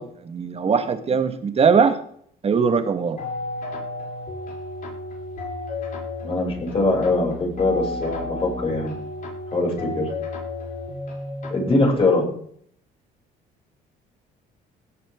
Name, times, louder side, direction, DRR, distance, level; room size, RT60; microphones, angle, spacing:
voice 1, 0.0-2.0 2.4-3.2, right 6 dB, 35° right, 9 dB, 1.7 m, -20 dB
sound 1, 3.2-12.0, left 2 dB, 55° left, 6.5 m, -33 dB
voice 2, 6.2-9.0 9.5-10.1 11.5-12.3, left 2 dB, 35° left, -1 dB, 6.9 m, -22 dB
17.5 x 9.2 x 3.8 m, 0.62 s
cardioid pair, 110°, 17 cm